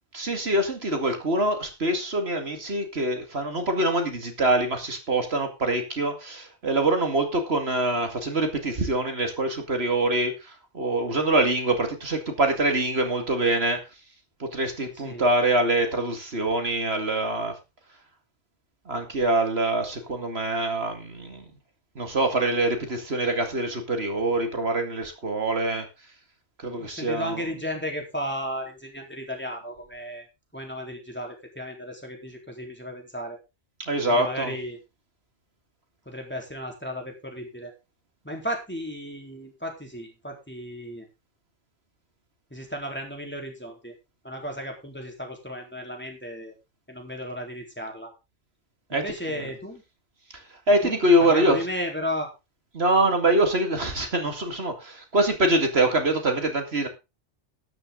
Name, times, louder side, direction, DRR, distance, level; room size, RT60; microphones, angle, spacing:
voice 1, 0.1-13.8 14.4-17.5 18.9-21.4 22.0-25.9 26.6-27.5 33.9-34.5 48.9-49.5 50.3-50.4 50.7-51.7 52.7-56.9, right 1 dB, 65° right, 5 dB, 2.5 m, -24 dB
voice 2, 26.7-30.3 30.5-33.4 34.1-34.8 36.1-37.7 38.2-41.1 42.5-43.9 44.2-46.5 46.9-48.1 48.9-49.8 50.8-52.3, equal, 10° left, 1 dB, 3.8 m, -34 dB
12.5 x 10.5 x 3.9 m, 0.27 s
omnidirectional pair, 1.1 m